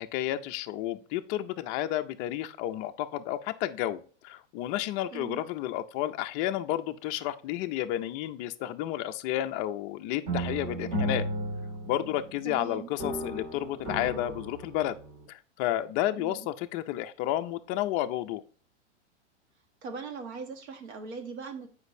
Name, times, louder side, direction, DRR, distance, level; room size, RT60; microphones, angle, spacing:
voice 1, 0.0-11.3 11.8-15.0 15.3-18.4, left 13 dB, 25° left, 8 dB, 0.4 m, -31 dB
voice 2, 5.1-5.4 12.4-12.9 16.2-16.5 19.8-21.7, right 5 dB, 65° right, 5 dB, 1.7 m, -40 dB
sound 1, 10.3-12.6 13.0-15.2, right 1 dB, 40° right, 2.0 m, -34 dB
8.0 x 5.2 x 2.6 m, 0.40 s
hypercardioid pair, 130°, 35 cm